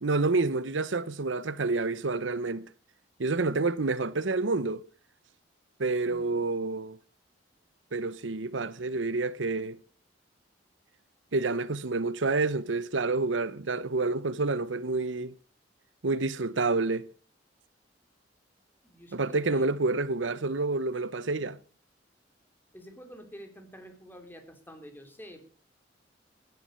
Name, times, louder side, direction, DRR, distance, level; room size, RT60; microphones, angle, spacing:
voice 1, 0.0-2.7 3.2-4.8 5.8-7.0 7.9-9.8 11.3-15.3 16.0-17.1 19.1-21.6, right 3 dB, 80° right, 0.9 m, -28 dB
voice 2, 6.0-6.4 18.8-19.7 22.7-25.5, equal, 10° left, 3.5 m, -48 dB
15.5 x 10.5 x 6.6 m
head